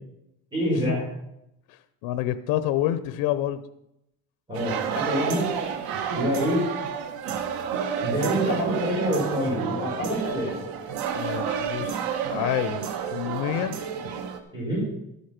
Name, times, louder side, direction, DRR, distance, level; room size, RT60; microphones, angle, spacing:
voice 1, 0.5-1.0 4.5-5.5 6.1-6.6 8.0-10.6 14.5-14.8, equal, 10° right, -6 dB, 5.1 m, -26 dB
voice 2, 1.7-3.6 11.1-13.8, left 12 dB, 90° left, 12 dB, 0.8 m, -28 dB
sound 1, 4.5-14.4, right 7 dB, 85° right, 1.5 m, -30 dB
12.0 x 8.5 x 5.9 m, 0.83 s
cardioid pair, 165°, 36 cm